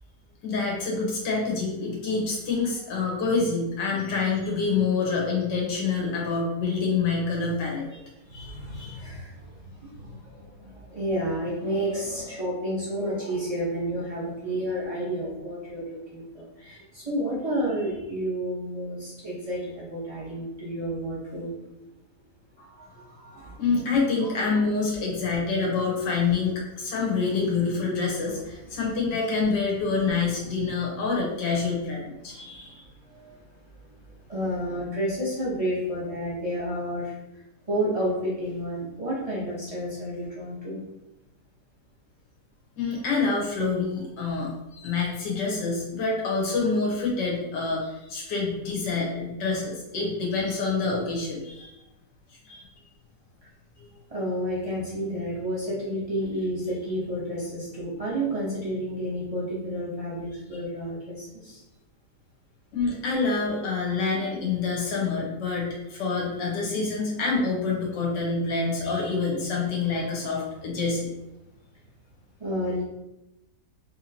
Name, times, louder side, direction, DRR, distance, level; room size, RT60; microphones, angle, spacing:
voice 1, 0.4-7.9 8.3-9.0 23.6-33.3 42.8-51.8 52.4-52.6 53.8-53.9 62.7-71.1, left 4 dB, 85° left, -2 dB, 1.6 m, -27 dB
voice 2, 8.3-21.5 22.6-23.6 24.2-24.3 34.1-37.1 37.7-40.8 54.1-61.6 69.4-69.5 72.4-72.8, equal, 30° right, -7 dB, 0.7 m, -31 dB
3.6 x 2.8 x 2.8 m, 0.94 s
omnidirectional pair, 1.8 m